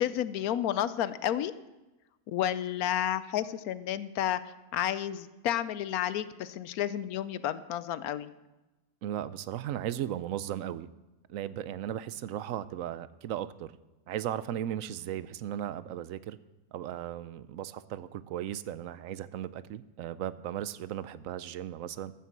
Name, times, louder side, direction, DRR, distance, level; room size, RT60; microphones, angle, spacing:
voice 1, 0.0-1.5 2.3-4.4 4.7-8.3, left 11 dB, 75° left, 14 dB, 1.0 m, -31 dB
voice 2, 9.0-10.9 11.3-13.7 14.1-16.4 16.7-22.1, right 11 dB, 70° right, 15 dB, 0.9 m, -36 dB
14.5 x 6.9 x 7.3 m, 1.1 s
omnidirectional pair, 1.6 m